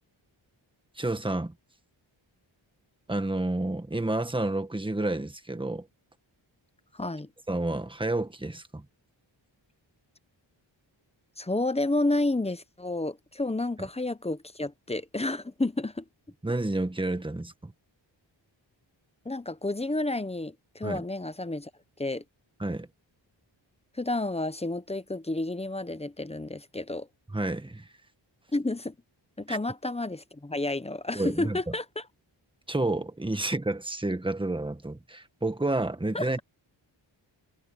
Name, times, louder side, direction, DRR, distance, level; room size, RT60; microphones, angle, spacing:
voice 1, 1.0-1.5 3.1-5.9 7.5-8.8 16.4-17.7 20.8-21.0 22.6-22.9 27.3-27.9 29.5-29.6 31.1-31.6 32.7-36.4, right 2 dB, 10° right, 1.5 m, -30 dB
voice 2, 6.9-7.3 11.4-16.1 19.2-21.7 22.0-22.2 23.9-27.1 28.5-28.9 29.4-32.1 36.1-36.4, left 2 dB, 15° left, 0.8 m, -30 dB
wide cardioid pair, 115°, 47 cm